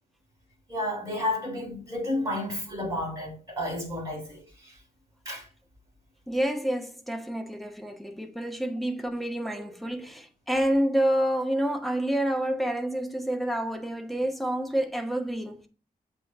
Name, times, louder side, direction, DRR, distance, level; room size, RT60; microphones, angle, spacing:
voice 1, 0.7-4.7 5.3-5.4, left 1 dB, 20° right, 3.7 m, -31 dB
voice 2, 6.3-15.7, right 1 dB, ahead, 0.9 m, -28 dB
8.0 x 2.7 x 4.9 m
wide cardioid pair, 100°, 16 cm